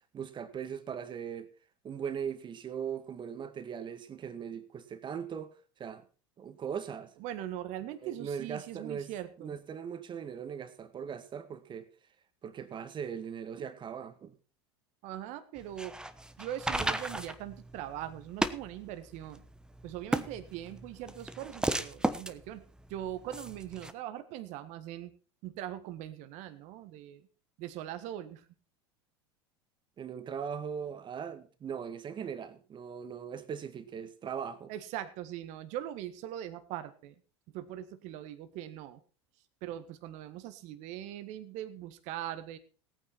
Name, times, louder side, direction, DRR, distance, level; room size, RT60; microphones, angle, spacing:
voice 1, 0.1-1.5 1.8-5.5 5.8-6.0 6.4-7.1 8.0-9.1 9.4-11.9 12.4-14.3 30.0-34.7, right 7 dB, 35° right, 1.8 m, -39 dB
voice 2, 7.2-9.6 15.0-16.0 16.4-19.4 19.8-22.6 22.9-25.1 25.4-27.3 27.6-28.4 34.7-37.1 37.5-39.0 39.6-42.6, right 12 dB, 55° right, 1.6 m, -41 dB
sound 1, 15.6-23.9, right 1 dB, 5° right, 1.1 m, -35 dB
17.5 x 9.4 x 4.3 m
hypercardioid pair, 85°, 14 cm